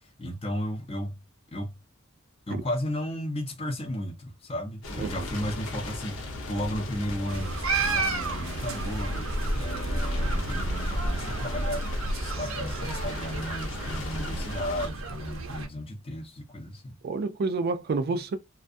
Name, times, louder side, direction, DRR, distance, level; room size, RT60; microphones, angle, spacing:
voice 1, 0.2-1.1 1.5-1.7 2.5-9.3 9.5-11.8 12.1-17.0, equal, 30° left, 0.6 m, -34 dB
sound 1, 4.8-14.9, left 1 dB, 80° left, 0.8 m, -36 dB
sound 2, 7.3-15.7, right 2 dB, 90° right, 0.6 m, -31 dB
voice 2, 17.0-18.4, right 3 dB, 50° right, 0.3 m, -29 dB
2.4 x 2.2 x 2.5 m
head